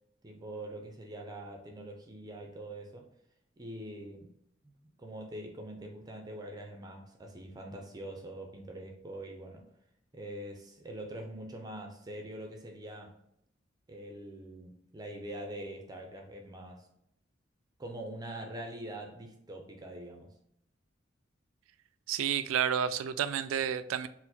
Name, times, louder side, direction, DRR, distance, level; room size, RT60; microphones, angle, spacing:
voice 1, 0.2-3.1 3.6-4.3 4.6-9.7 10.1-13.2 13.9-16.9 17.8-20.4, right 1 dB, 20° right, 0.4 m, -44 dB
voice 2, 22.1-24.1, right 9 dB, 90° right, 0.3 m, -30 dB
4.4 x 2.0 x 4.1 m
head